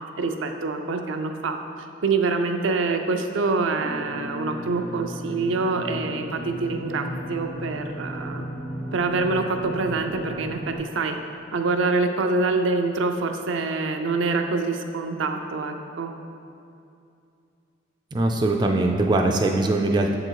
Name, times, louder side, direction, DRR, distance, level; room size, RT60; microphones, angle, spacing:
voice 1, 0.2-1.6 2.0-8.4 8.9-11.2 11.5-16.1, right 3 dB, 80° right, 5 dB, 0.5 m, -25 dB
sound 1, 3.8-10.8, equal, 70° left, 1.2 m, -35 dB
voice 2, 18.1-20.2, right 2 dB, 20° right, 2 dB, 0.3 m, -21 dB
7.2 x 3.9 x 4.5 m, 2.5 s
head